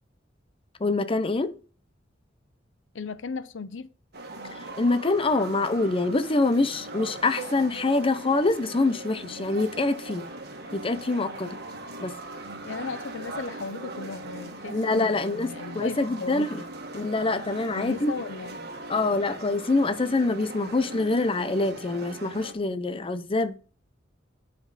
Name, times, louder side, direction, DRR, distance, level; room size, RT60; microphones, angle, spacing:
voice 1, 0.8-1.5 4.8-10.3 10.7-11.6 12.0-12.1 14.7-16.6 16.9-18.1 18.9-23.6, left 3 dB, 30° left, 0.7 m, -25 dB
voice 2, 2.9-3.9 12.6-16.7 17.7-18.6, left 4 dB, 85° left, 0.6 m, -36 dB
sound 1, 4.1-22.5, right 2 dB, 60° right, 1.5 m, -40 dB
10.0 x 5.2 x 4.0 m
head